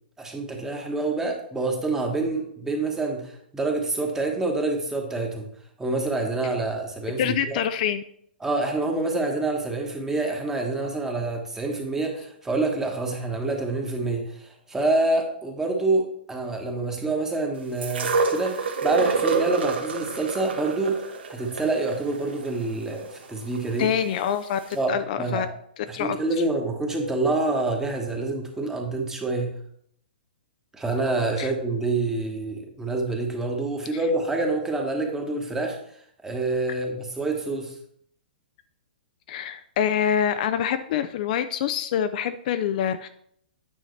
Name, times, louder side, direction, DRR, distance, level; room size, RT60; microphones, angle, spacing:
voice 1, 0.2-5.5 5.8-7.6 8.4-21.0 21.3-23.9 24.7-25.5 25.9-29.5 30.7-35.8 36.2-37.7, right 2 dB, 10° right, 2 dB, 1.3 m, -27 dB
voice 2, 7.2-8.0 23.8-25.5 25.9-26.2 31.4-31.5 39.3-43.1, left 9 dB, 50° left, 10 dB, 0.4 m, -25 dB
sound 1, 17.8-23.9 24.7-24.8, right 4 dB, 80° right, 1.1 m, -28 dB
9.1 x 5.6 x 3.2 m, 0.67 s
hypercardioid pair, 140°, 6 cm